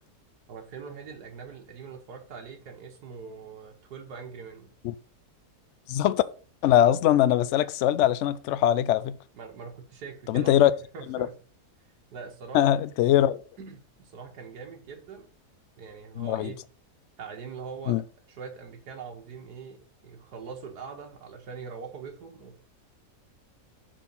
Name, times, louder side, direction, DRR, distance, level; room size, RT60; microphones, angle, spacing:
voice 1, 0.5-4.7 9.3-10.5 10.9-11.4 12.1-12.6 13.6-15.3 15.8-16.6 17.2-18.0 18.3-22.6, right 5 dB, 85° right, 1.8 m, -42 dB
voice 2, 5.9-6.2 6.6-9.2 10.3-10.7 11.1-11.3 12.5-13.4 16.2-16.5 17.9-18.0, left 12 dB, 70° left, 0.7 m, -22 dB
6.2 x 4.5 x 5.4 m
omnidirectional pair, 1.7 m